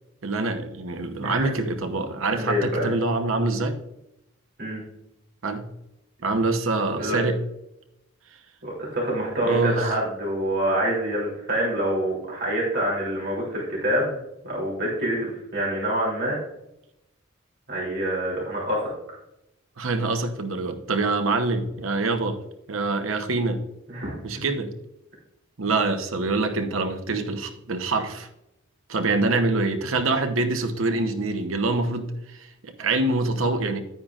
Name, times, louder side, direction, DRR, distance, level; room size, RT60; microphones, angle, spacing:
voice 1, 0.2-3.8 5.4-5.7 6.2-7.4 9.4-9.8 19.8-22.4 22.7-23.6 24.2-24.7 25.6-28.3 28.9-33.8, right 3 dB, 80° right, 7 dB, 1.0 m, -25 dB
voice 2, 2.4-2.9 4.6-4.8 6.9-7.2 8.6-14.2 14.4-16.4 17.7-19.2 23.9-24.1, right 1 dB, 55° right, -5 dB, 3.1 m, -26 dB
10.0 x 9.4 x 2.5 m, 0.86 s
head